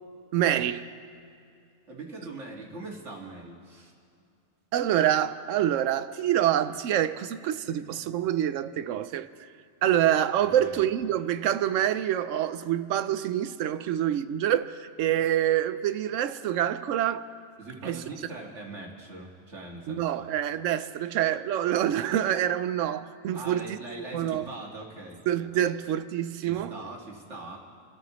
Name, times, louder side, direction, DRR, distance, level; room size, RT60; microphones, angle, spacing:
voice 1, 0.3-0.8 4.7-9.3 9.8-17.3 17.8-18.0 19.9-23.8 24.1-24.4 25.3-26.7, right 11 dB, 85° right, 1.0 m, -26 dB
voice 2, 1.9-3.9 10.4-10.8 17.6-20.3 23.3-25.2 25.5-25.6 26.4-27.6, right 2 dB, 70° right, 2.4 m, -41 dB
28.5 x 13.5 x 3.1 m
omnidirectional pair, 1.3 m